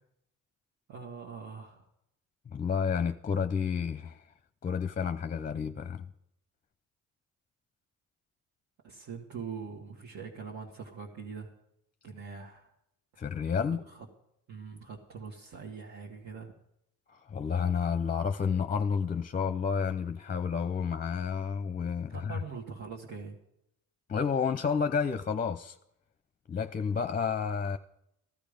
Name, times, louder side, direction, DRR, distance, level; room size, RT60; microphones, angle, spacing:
voice 1, 0.9-1.8 8.8-11.5 12.0-12.7 13.9-14.1 14.5-16.5 22.1-23.4, right 5 dB, 65° right, 1.9 m, -43 dB
voice 2, 2.5-4.3 4.6-6.1 13.2-13.8 17.1-22.4 24.1-25.8 26.5-27.8, left 6 dB, 30° left, 0.6 m, -30 dB
14.5 x 12.5 x 5.2 m
cardioid pair, 90°, 30 cm